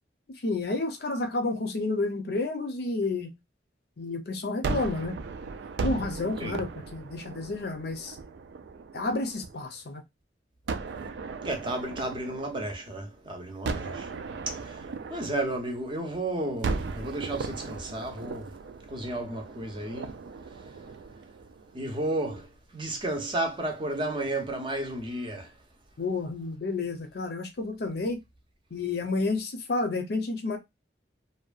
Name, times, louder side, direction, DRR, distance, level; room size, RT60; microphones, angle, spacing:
voice 1, 0.4-3.4 4.0-5.2 5.8-8.2 8.9-10.0 26.0-28.2 28.7-30.6, left 3 dB, 60° left, 0.6 m, -30 dB
Gunshot gunfire, 4.6-9.8 10.7-13.1 13.6-16.1 16.6-21.8, right 4 dB, 70° right, 0.3 m, -37 dB
voice 2, 11.4-14.1 14.5-14.8 15.1-18.5 18.9-20.1 21.7-25.5, right 1 dB, 30° right, 0.6 m, -32 dB
2.7 x 2.2 x 2.3 m
head